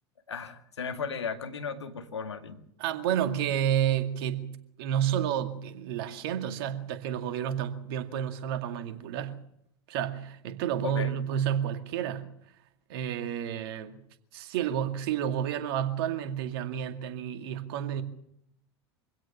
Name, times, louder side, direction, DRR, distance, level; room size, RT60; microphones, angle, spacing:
voice 1, 0.3-2.6 10.8-11.1, left 6 dB, 80° left, 2.0 m, -35 dB
voice 2, 2.8-9.4 9.9-12.3 12.9-14.0 14.3-18.0, right 10 dB, 60° right, 2.3 m, -30 dB
25.0 x 16.5 x 7.2 m
figure-of-eight pair, 85°, 14 cm